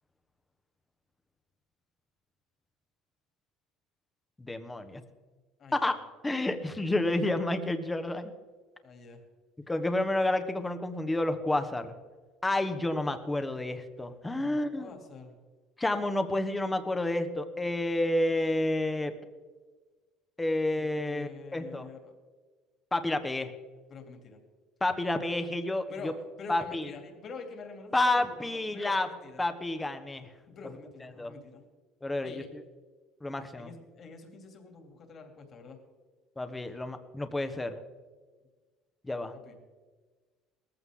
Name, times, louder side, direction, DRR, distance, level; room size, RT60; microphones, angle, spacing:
voice 1, 4.4-5.0 5.7-5.9 6.2-8.3 9.7-11.9 12.4-14.9 15.8-19.1 20.4-21.9 22.9-23.5 24.8-26.1 26.5-26.9 27.9-29.1 29.4-30.3 31.2-31.3 32.0-32.4 33.2-33.7 36.4-37.8 39.1-39.3, left 2 dB, 10° left, 8 dB, 1.2 m, -30 dB
voice 2, 5.6-5.9 8.8-9.2 14.4-15.3 20.8-22.1 23.9-24.4 25.9-29.4 30.5-31.6 32.2-32.5 33.5-35.8 39.4-39.6, left 4 dB, 40° left, 4 dB, 2.9 m, -46 dB
18.5 x 14.5 x 3.8 m, 1.4 s
cardioid pair, 130°, 0 cm